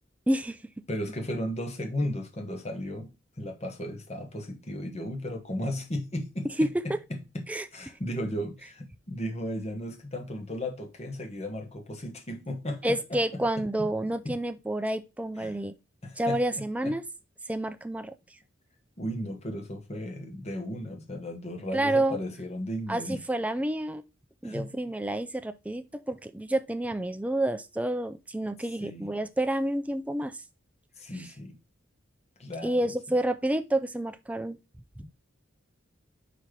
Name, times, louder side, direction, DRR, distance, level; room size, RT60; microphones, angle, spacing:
voice 1, 0.3-0.6 6.6-6.7 7.5-7.7 12.8-15.7 16.2-17.0 17.5-18.1 21.7-22.2 22.9-24.0 24.4-30.4 31.2-31.3 32.6-34.6 35.0-35.1, right 1 dB, 5° right, 0.4 m, -29 dB
voice 2, 0.9-6.7 7.1-13.9 14.2-14.4 15.4-15.5 16.0-17.0 19.0-23.2 24.4-24.7 28.8-29.1 31.0-31.6 32.4-32.9, equal, 35° left, 1.1 m, -35 dB
5.1 x 4.2 x 4.6 m
head